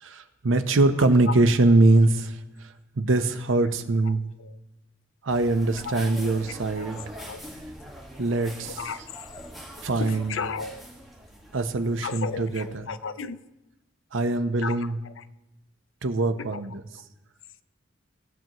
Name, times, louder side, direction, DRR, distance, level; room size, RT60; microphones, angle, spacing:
voice 1, 0.0-2.7 3.0-4.3 5.2-7.0 8.2-8.8 9.8-10.4 11.5-12.9 14.1-15.0 16.0-16.8, right 2 dB, 80° right, 0.8 m, -23 dB
sound 1, 5.3-12.8, equal, ahead, 1.7 m, -43 dB
voice 2, 10.0-10.8 12.0-13.4 14.6-14.8 15.1-15.2 16.5-16.6, left 5 dB, 75° left, 0.6 m, -34 dB
18.5 x 7.7 x 3.0 m
head